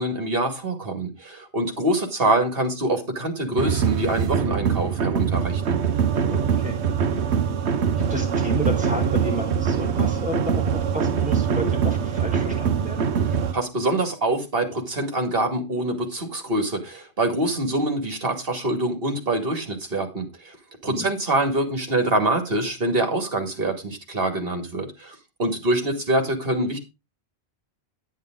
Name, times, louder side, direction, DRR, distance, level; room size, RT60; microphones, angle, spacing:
voice 1, 0.0-5.8 13.5-20.6 20.8-26.8, right 1 dB, 60° right, 5 dB, 2.5 m, -25 dB
sound 1, 3.6-13.5, right 7 dB, 80° right, 1.1 m, -23 dB
voice 2, 6.3-6.8 7.1-7.2 7.6-13.1 20.9-21.1, equal, 5° right, 0 dB, 4.8 m, -32 dB
9.9 x 9.3 x 3.8 m, 0.25 s
omnidirectional pair, 1.1 m